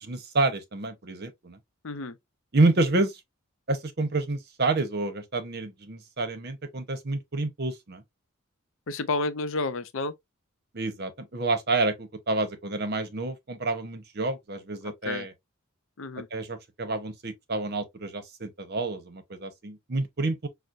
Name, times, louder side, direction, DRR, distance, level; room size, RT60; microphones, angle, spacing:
voice 1, 0.0-1.6 2.5-3.1 3.7-8.0 10.7-15.3 16.3-20.5, right 2 dB, 50° right, 0.9 m, -28 dB
voice 2, 1.8-2.2 8.9-10.1 14.8-15.3 16.0-16.3, left 3 dB, 65° left, 0.6 m, -31 dB
6.0 x 2.1 x 2.6 m
head